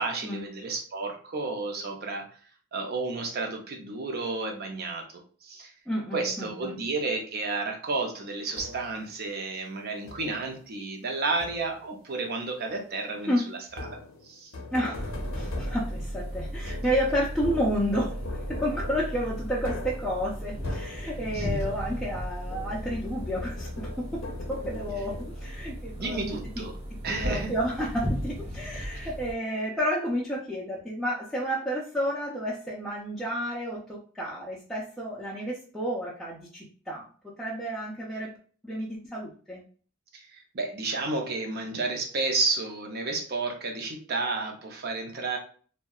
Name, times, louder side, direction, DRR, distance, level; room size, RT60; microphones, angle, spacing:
voice 1, 0.0-2.3 2.7-5.7 6.1-13.6 14.2-14.5 21.3-21.6 26.0-26.7 27.0-27.5 40.1-45.4, right 3 dB, 50° right, 2 dB, 0.6 m, -31 dB
voice 2, 5.9-6.7 13.2-13.5 14.7-18.2 18.5-26.6 26.9-38.3 38.6-39.6, equal, ahead, -8 dB, 0.4 m, -31 dB
sound 1, 8.6-9.1 10.1-10.5 11.4-12.0 13.7-22.2 22.5-25.7, left 2 dB, 70° left, 0.5 m, -40 dB
sound 2, 14.9-29.3, equal, 75° right, 1.0 m, -36 dB
2.7 x 2.1 x 2.3 m, 0.43 s
head